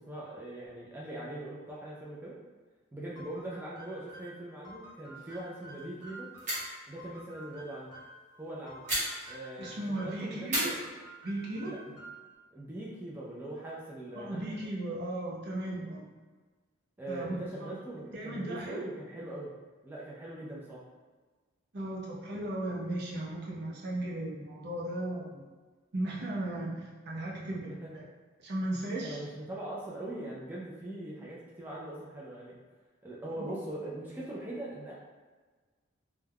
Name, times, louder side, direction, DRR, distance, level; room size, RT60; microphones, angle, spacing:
voice 1, 0.1-2.4 2.9-6.3 6.9-7.9 8.4-8.8 9.3-10.8 11.6-12.0 12.5-14.5 17.0-19.5 19.8-20.8 29.0-32.6 33.0-34.9, right 1 dB, 10° right, -6 dB, 0.4 m, -41 dB
sound 1, 3.2-8.2 8.7-10.3 10.6-12.3, right 1 dB, 15° left, 1.0 m, -50 dB
sound 2, 5.1-5.5 5.8-5.9 6.4-6.8 8.9-9.7 10.5-11.6, right 1 dB, 40° right, 1.0 m, -36 dB
voice 2, 9.6-10.8 11.2-11.7 14.1-16.0 17.1-17.7 18.1-18.9 21.7-25.4 25.9-28.0 28.4-29.2 33.4-33.5, right 1 dB, 55° right, -4 dB, 0.6 m, -36 dB
2.2 x 2.2 x 3.3 m, 1.4 s
head